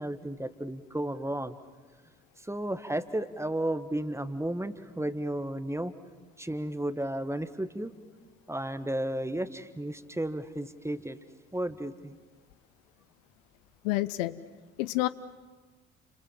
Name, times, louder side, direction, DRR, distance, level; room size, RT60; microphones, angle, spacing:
voice 1, 0.0-1.6 2.4-5.9 6.4-7.9 8.5-11.2 11.5-12.2, right 1 dB, 5° right, 12 dB, 1.5 m, -33 dB
voice 2, 13.8-14.4 14.8-15.1, left 18 dB, 70° left, 15 dB, 0.8 m, -28 dB
29.5 x 26.0 x 7.6 m, 1.3 s
figure-of-eight pair, 45°, 40 cm